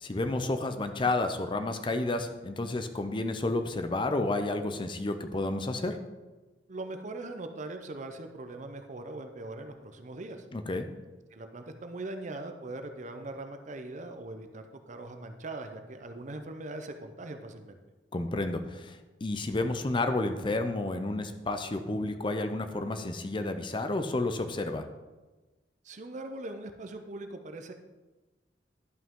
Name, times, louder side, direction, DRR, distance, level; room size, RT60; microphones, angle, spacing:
voice 1, 0.0-6.0 10.5-10.9 18.1-24.9, left 2 dB, 30° left, 8 dB, 0.6 m, -31 dB
voice 2, 6.7-10.4 11.3-17.8 25.8-27.7, right 2 dB, 45° right, 7 dB, 0.6 m, -41 dB
11.0 x 5.6 x 3.7 m, 1.2 s
head